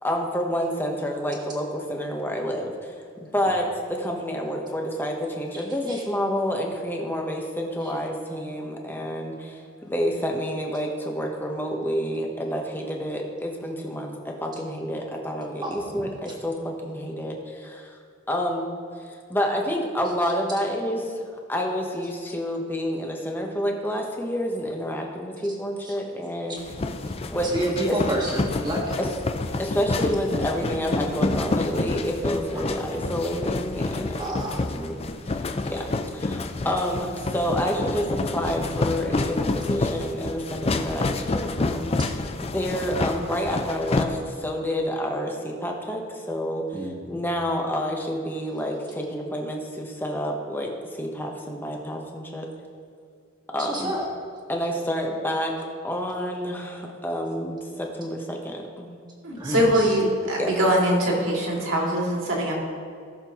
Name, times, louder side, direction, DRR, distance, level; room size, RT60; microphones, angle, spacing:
voice 1, 0.0-18.0 18.3-18.7 19.3-26.6 27.3-27.5 27.9-28.0 29.0-29.1 29.6-35.0 35.6-42.1 42.4-46.7 47.0-50.7 51.0-52.5 53.5-54.0 54.5-55.5 55.8-59.0 60.4-60.5, equal, 10° left, 1 dB, 1.0 m, -29 dB
voice 2, 15.6-16.1 25.8-25.9 27.5-29.0 32.5-32.8 34.2-34.6 46.7-46.9 53.6-54.1 59.4-60.0, right 1 dB, 20° right, -2 dB, 1.7 m, -29 dB
sound 1, 26.6-44.0, left 2 dB, 30° left, 0.4 m, -28 dB
voice 3, 59.2-62.6, equal, 60° right, -3 dB, 2.3 m, -22 dB
17.5 x 6.7 x 3.0 m, 2.2 s
head